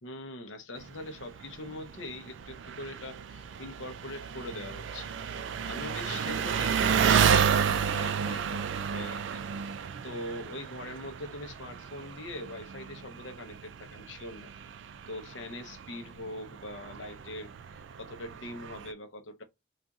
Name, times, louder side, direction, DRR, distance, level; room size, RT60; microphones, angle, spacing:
voice 1, 0.0-5.1 5.6-9.8 10.0-14.5 15.1-19.4, left 1 dB, 85° left, 0.7 m, -42 dB
Engine, 0.8-18.9, right 7 dB, 80° right, 0.3 m, -32 dB
4.0 x 2.4 x 2.4 m
head